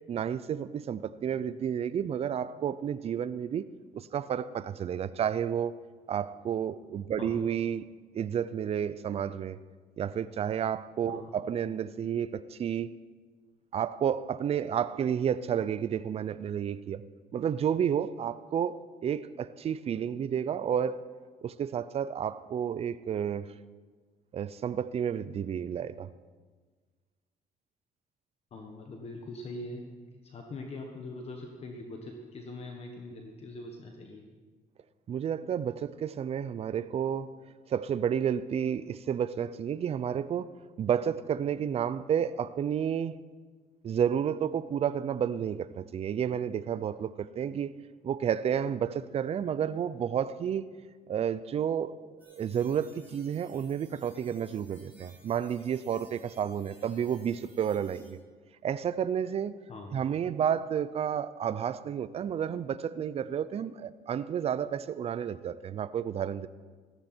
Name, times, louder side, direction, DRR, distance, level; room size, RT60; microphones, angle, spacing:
voice 1, 0.1-3.7 3.9-5.7 6.1-7.9 8.1-9.6 10.0-12.9 13.7-17.0 17.3-21.0 21.4-23.5 24.3-26.1 35.1-37.3 37.7-40.5 40.8-43.2 43.8-47.7 48.0-50.7 51.1-51.9 52.3-58.2 58.6-59.6 59.9-66.5, right 8 dB, 40° right, 0.5 m, -31 dB
voice 2, 11.1-11.4 28.5-29.8 30.1-34.2 59.7-60.0, left 2 dB, 40° left, 1.5 m, -42 dB
sound 1, 52.2-58.1, right 2 dB, 10° right, 5.0 m, -59 dB
15.0 x 14.0 x 4.5 m
cardioid pair, 120°, 16 cm